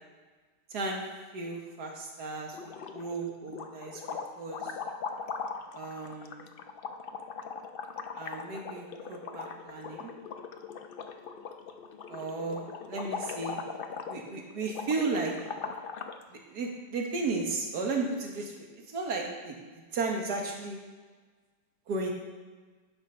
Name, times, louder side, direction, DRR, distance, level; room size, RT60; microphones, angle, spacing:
voice 1, 0.7-1.0 1.3-4.0 4.4-4.7 5.7-6.5 8.1-10.1 12.1-13.6 14.1-15.3 16.3-20.8 21.9-22.1, right 3 dB, 70° right, 1 dB, 2.0 m, -34 dB
sound 1, 2.5-3.2 3.5-16.2, left 5 dB, 65° left, 0.5 m, -40 dB
10.0 x 6.5 x 5.6 m, 1.4 s
omnidirectional pair, 1.8 m